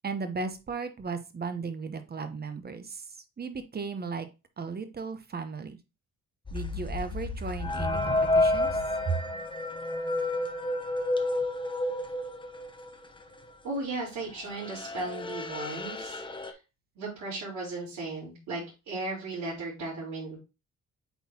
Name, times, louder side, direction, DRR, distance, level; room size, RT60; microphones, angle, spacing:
voice 1, 0.0-4.3 4.6-5.8 6.5-8.8 9.1-9.2, right 5 dB, 30° right, 9 dB, 1.0 m, -35 dB
sound 1, 6.5-13.1 13.3-14.1 14.4-16.5, left 2 dB, 15° left, 0.8 m, -30 dB
voice 2, 13.6-16.2 16.5-16.6 17.0-20.4, right 2 dB, 75° right, -8 dB, 4.1 m, -36 dB
8.1 x 4.1 x 2.9 m, 0.27 s
cardioid pair, 90°, 30 cm